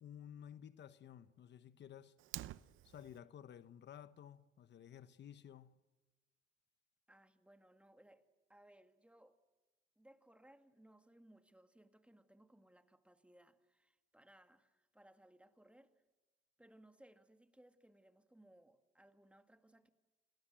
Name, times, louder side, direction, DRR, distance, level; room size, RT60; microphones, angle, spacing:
voice 1, 0.0-2.2 2.5-5.8, left 9 dB, 60° left, 1.1 m, -55 dB
Fire, 2.2-3.2, right 14 dB, 80° right, 0.7 m, -48 dB
voice 2, 7.1-9.4 10.0-16.0 16.6-19.9, right 1 dB, 5° right, 2.1 m, -65 dB
29.0 x 20.0 x 7.7 m
cardioid pair, 90°, 20 cm